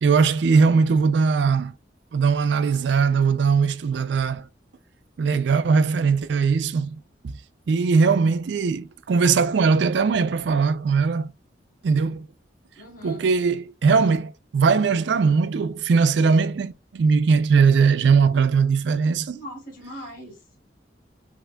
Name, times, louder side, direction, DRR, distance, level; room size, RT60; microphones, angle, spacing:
voice 1, 0.0-1.7 2.1-4.5 5.2-6.9 7.2-7.3 7.7-11.3 11.8-12.3 13.0-19.4, right 5 dB, 75° right, 0.4 m, -20 dB
voice 2, 12.8-13.2 19.3-20.4, equal, 45° left, 2.4 m, -40 dB
5.5 x 2.6 x 2.2 m
head